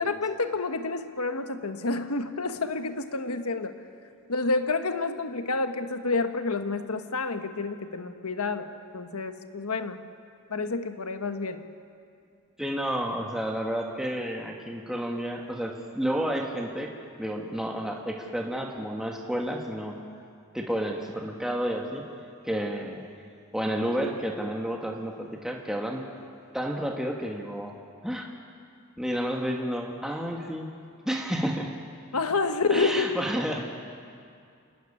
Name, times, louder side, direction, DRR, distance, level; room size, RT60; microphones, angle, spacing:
voice 1, 0.0-3.8 4.3-10.0 10.5-11.6 32.1-33.2 33.5-33.6, left 3 dB, 90° left, 8 dB, 1.4 m, -29 dB
voice 2, 12.6-16.9 17.2-20.0 20.5-22.0 22.4-23.1 23.5-26.0 26.5-27.7 28.0-28.3 29.0-30.7 31.0-31.7 32.7-33.6, equal, 5° right, 0 dB, 1.5 m, -30 dB
28.5 x 13.0 x 9.9 m, 2.3 s
head